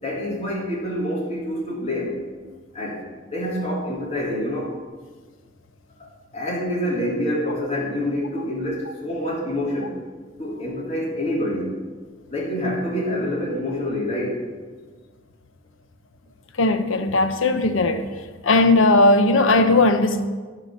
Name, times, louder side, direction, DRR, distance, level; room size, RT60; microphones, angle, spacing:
voice 1, 0.0-2.2 2.7-3.0 3.3-4.7 6.0-6.1 6.3-9.9 10.4-11.8 12.3-14.4, left 1 dB, 35° left, -4 dB, 3.1 m, -26 dB
voice 2, 16.6-18.1 18.4-20.2, left 2 dB, 90° left, 9 dB, 0.8 m, -17 dB
14.5 x 4.9 x 6.4 m, 1.4 s
head